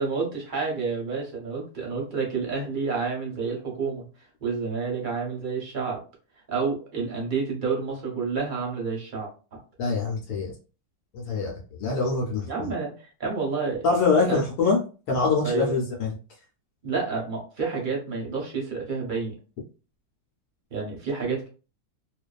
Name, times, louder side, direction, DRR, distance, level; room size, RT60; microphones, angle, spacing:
voice 1, 0.0-4.0 4.4-6.0 6.5-9.6 12.5-13.8 14.2-14.4 15.4-15.7 16.8-19.3 20.7-21.5, right 5 dB, 45° right, -1 dB, 0.7 m, -29 dB
voice 2, 9.8-10.5 11.1-11.5 11.8-12.7 13.8-14.8 15.1-16.1, left 4 dB, 80° left, -2 dB, 1.1 m, -24 dB
2.5 x 2.3 x 2.3 m, 0.35 s
omnidirectional pair, 1.7 m